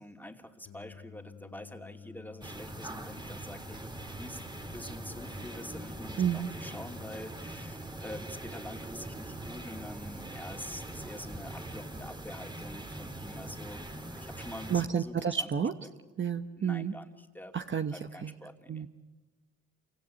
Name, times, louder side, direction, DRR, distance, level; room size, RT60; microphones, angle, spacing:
voice 1, 0.0-3.9 4.2-4.4 4.7-15.5 16.6-17.6 17.9-18.8, left 1 dB, 5° left, 4 dB, 2.7 m, -46 dB
Singing, 0.6-7.2, left 5 dB, 85° left, 5.8 m, -51 dB
sound 1, 2.4-14.8, right 1 dB, 15° right, 2.3 m, -42 dB
voice 2, 6.2-6.5 14.7-15.7 16.2-16.9 17.5-18.3 18.7-18.9, right 7 dB, 40° right, 7 dB, 1.2 m, -30 dB
28.0 x 25.0 x 8.4 m, 1.2 s
cardioid pair, 90°, 30 cm